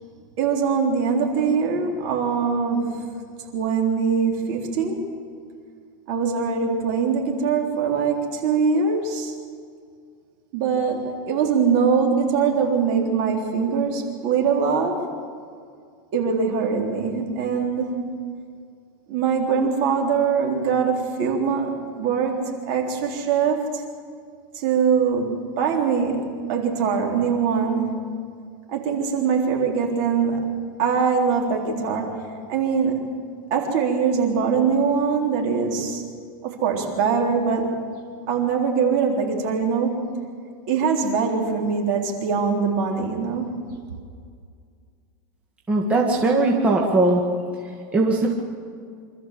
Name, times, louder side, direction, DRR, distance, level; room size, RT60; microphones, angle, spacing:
voice 1, 0.4-3.2 3.5-5.1 6.1-9.3 10.5-15.1 16.1-18.0 19.1-23.8 24.5-27.9 28.7-32.1 32.5-33.0 33.5-36.0 36.4-37.7 38.3-40.2 40.7-43.5, right 5 dB, 45° right, 1 dB, 3.8 m, -22 dB
voice 2, 45.7-47.2 47.9-48.3, right 2 dB, 10° right, -2 dB, 1.8 m, -19 dB
26.0 x 13.5 x 7.6 m, 2.2 s
supercardioid pair, 160°, 11 cm